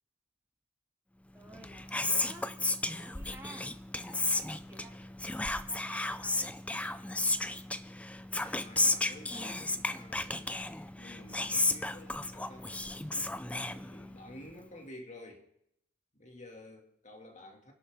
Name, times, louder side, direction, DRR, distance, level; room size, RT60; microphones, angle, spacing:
voice 1, 1.3-2.5 3.0-3.6 4.1-5.1 5.4-6.5, right 2 dB, 10° right, -2 dB, 2.6 m, -53 dB
Whispering, 1.5-14.3, left 2 dB, 5° left, 0.4 m, -33 dB
voice 2, 8.4-10.6 11.0-12.7 13.5-15.5 16.1-17.7, left 1 dB, 35° left, 2 dB, 2.3 m, -51 dB
24.5 x 11.5 x 3.6 m, 0.75 s
head